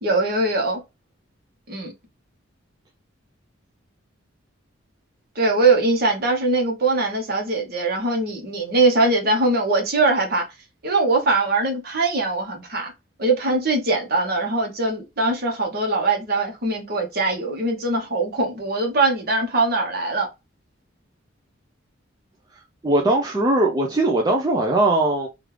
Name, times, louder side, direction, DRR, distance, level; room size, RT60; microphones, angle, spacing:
voice 1, 0.0-0.8 1.7-1.9 5.4-10.4 10.8-12.9 13.2-20.3, right 2 dB, 50° right, 1.1 m, -21 dB
voice 2, 22.8-25.3, right 2 dB, 20° right, 0.4 m, -20 dB
3.2 x 2.5 x 3.2 m
head